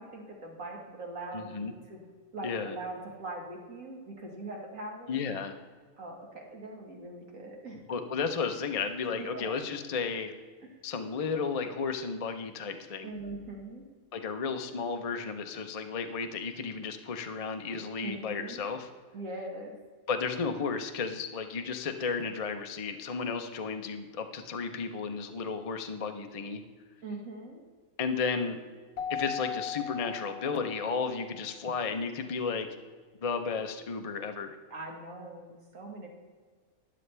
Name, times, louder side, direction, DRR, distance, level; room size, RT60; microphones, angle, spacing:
voice 1, 0.0-2.0 2.3-5.2 6.0-7.8 9.2-9.5 13.0-13.8 18.0-18.6 19.1-19.8 27.0-27.6 34.7-36.1, right 2 dB, 65° right, 0 dB, 2.2 m, -41 dB
voice 2, 1.3-1.7 2.4-2.8 5.1-5.5 7.9-10.3 10.8-13.1 14.1-18.9 20.1-26.6 28.0-28.6 29.1-32.7 33.2-34.6, left 5 dB, 40° left, 6 dB, 0.5 m, -33 dB
Keyboard (musical), 29.0-31.2, left 7 dB, 85° left, 1.1 m, -38 dB
12.5 x 9.9 x 3.4 m, 1.5 s
omnidirectional pair, 1.6 m